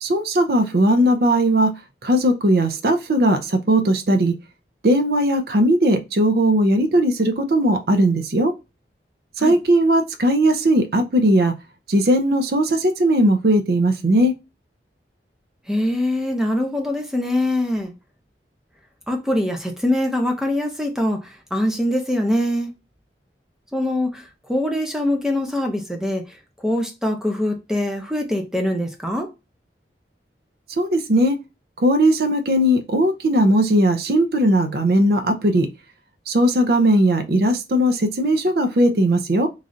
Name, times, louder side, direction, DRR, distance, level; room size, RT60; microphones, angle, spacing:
voice 1, 0.0-1.7 2.0-4.4 4.8-8.5 9.4-11.6 11.9-14.3 30.8-31.4 31.8-35.7 36.3-39.5, right 1 dB, 60° right, 0.5 m, -18 dB
voice 2, 15.7-17.9 19.1-22.7 23.7-29.3, left 1 dB, 5° right, 0.5 m, -23 dB
3.1 x 2.4 x 2.5 m
head